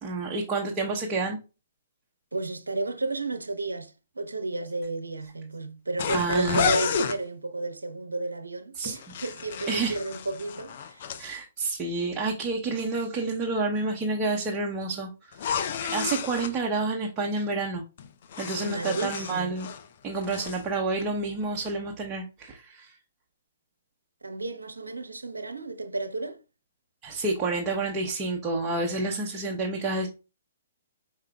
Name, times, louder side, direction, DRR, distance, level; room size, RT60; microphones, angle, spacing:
voice 1, 0.0-1.4 6.1-6.7 8.8-9.0 9.7-10.0 11.2-15.4 15.6-17.8 18.4-19.7 20.0-22.9 27.0-30.1, right 3 dB, 20° right, 0.8 m, -29 dB
voice 2, 2.3-11.1 18.6-19.5 24.2-26.4, right 2 dB, 85° right, 0.7 m, -32 dB
sound 1, 6.0-7.2 8.8-11.2 15.3-16.5 18.0-19.9 20.2-20.6, left 7 dB, 50° left, 0.5 m, -31 dB
4.8 x 4.7 x 2.3 m
figure-of-eight pair, 125°, 0 cm